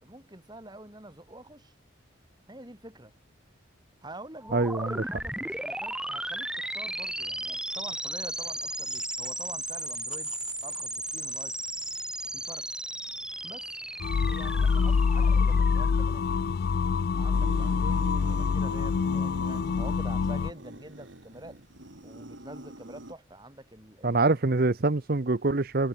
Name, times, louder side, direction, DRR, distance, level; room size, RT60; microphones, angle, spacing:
voice 1, 0.0-1.7 2.5-3.1 4.0-10.4 10.6-11.6 12.2-12.7 13.4-13.8 14.3-16.2 17.2-21.6 22.0-24.2, right 1 dB, 20° right, 4.1 m, -47 dB
sound 1, 4.4-16.1, right 1 dB, 5° right, 0.8 m, -35 dB
voice 2, 4.5-5.0 24.0-25.9, right 3 dB, 50° right, 0.8 m, -25 dB
sound 2, 14.0-20.5, left 5 dB, 50° left, 0.3 m, -25 dB
sound 3, 17.3-23.1, right 1 dB, 70° right, 3.2 m, -43 dB
head